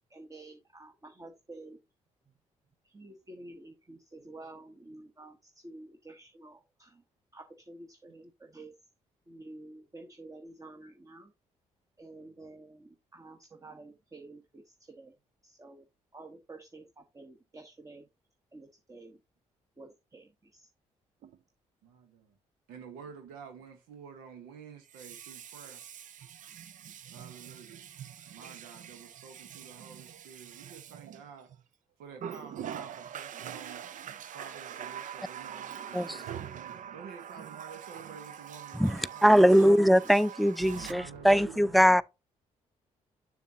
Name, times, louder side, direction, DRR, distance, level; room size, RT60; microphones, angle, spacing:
voice 1, 0.1-1.8 2.2-2.3 2.8-7.0 7.3-8.7 9.3-11.3 12.0-15.1 15.4-18.1 18.5-19.2 19.8-20.7, right 2 dB, 20° right, 1.1 m, -50 dB
Water tap faucet, 21.2-21.4 24.8-31.6 32.2-40.9, right 9 dB, 60° right, 0.5 m, -44 dB
voice 2, 21.8-22.3 22.7-25.8 27.1-27.8 28.3-31.5 32.0-33.9 34.3-39.7 40.6-42.0, right 6 dB, 85° right, 1.0 m, -49 dB
voice 3, 38.7-42.0, equal, ahead, 0.4 m, -22 dB
7.0 x 6.3 x 2.8 m
supercardioid pair, 55°, 15 cm